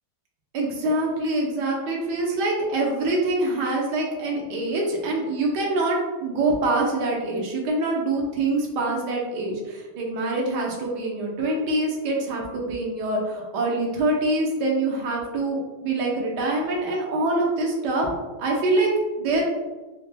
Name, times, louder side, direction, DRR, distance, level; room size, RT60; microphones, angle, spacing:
voice 1, 0.5-18.9 19.2-19.4, right 2 dB, 85° right, -1 dB, 1.4 m, -25 dB
4.3 x 2.1 x 3.2 m, 1.2 s
omnidirectional pair, 1.8 m